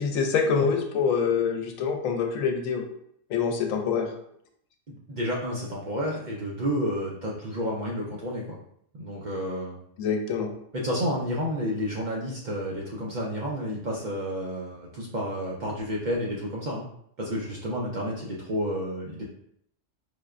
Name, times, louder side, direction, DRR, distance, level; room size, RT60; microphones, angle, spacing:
voice 1, 0.0-2.8 3.3-4.1 10.0-10.5, left 6 dB, 90° left, 4 dB, 1.0 m, -25 dB
voice 2, 5.1-8.4 9.0-9.8 10.7-16.8 17.2-19.2, equal, 60° right, -3 dB, 0.5 m, -30 dB
4.8 x 2.2 x 2.4 m, 0.69 s
omnidirectional pair, 1.4 m